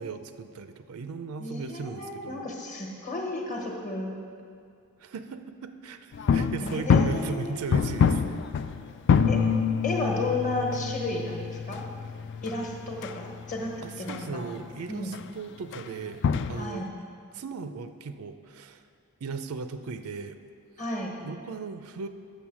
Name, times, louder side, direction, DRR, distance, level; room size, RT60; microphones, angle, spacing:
voice 1, 0.0-2.5 5.0-8.3 13.8-16.9 17.3-18.8 19.2-20.4 21.2-22.1, right 4 dB, 75° right, 9 dB, 0.5 m, -37 dB
voice 2, 1.4-4.1 6.6-7.6 9.2-9.4 9.8-11.9 12.4-14.5 14.9-15.1 16.5-17.0 20.8-21.2, left 2 dB, 35° left, 0 dB, 1.2 m, -33 dB
sound 1, 6.1-14.3 14.5-14.7 15.1-15.3 15.7-16.6, left 6 dB, 55° left, 0.3 m, -26 dB
7.2 x 6.8 x 6.0 m, 2.3 s
head